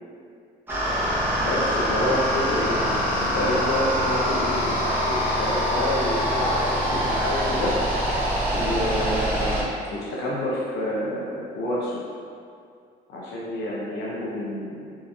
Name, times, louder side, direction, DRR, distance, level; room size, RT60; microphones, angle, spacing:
sound 1, 0.7-9.6, equal, 10° right, 0.9 m, -24 dB
voice 1, 1.4-7.7 8.5-12.0 13.1-15.0, left 1 dB, 75° left, -7 dB, 0.7 m, -28 dB
3.7 x 2.5 x 2.6 m, 2.3 s
cardioid pair, 110°, 17 cm